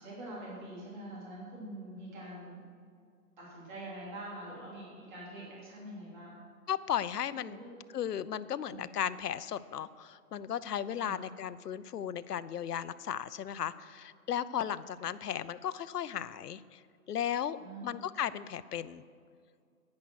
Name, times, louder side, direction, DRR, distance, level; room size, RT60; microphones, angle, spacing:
voice 1, 0.0-2.7 3.4-6.4 7.4-7.7 8.7-8.8 10.9-11.2 17.6-17.9, right 1 dB, 30° right, -6 dB, 3.3 m, -45 dB
voice 2, 6.7-7.6 7.9-16.8 17.1-17.6 17.8-19.0, left 9 dB, 85° left, 15 dB, 0.7 m, -35 dB
10.5 x 9.7 x 6.4 m, 2.2 s
hypercardioid pair, 165°, 46 cm